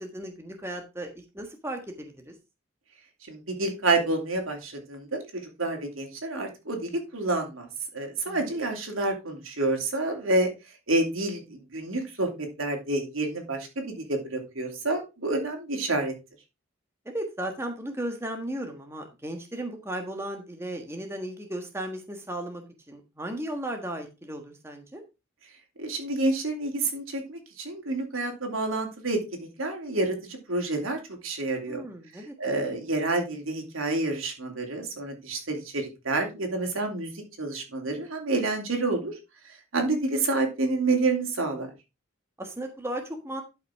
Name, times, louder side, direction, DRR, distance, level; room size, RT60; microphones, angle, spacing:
voice 1, 0.0-2.3 8.3-8.5 17.0-22.6 22.9-25.0 31.7-32.3 42.4-43.4, right 1 dB, 10° right, 3 dB, 1.5 m, -35 dB
voice 2, 3.3-7.7 7.9-10.5 10.9-16.1 25.8-29.2 29.6-31.8 32.4-37.1 37.4-39.1 39.7-41.7, right 2 dB, 85° right, 3 dB, 2.8 m, -28 dB
12.0 x 5.9 x 3.6 m, 0.26 s
head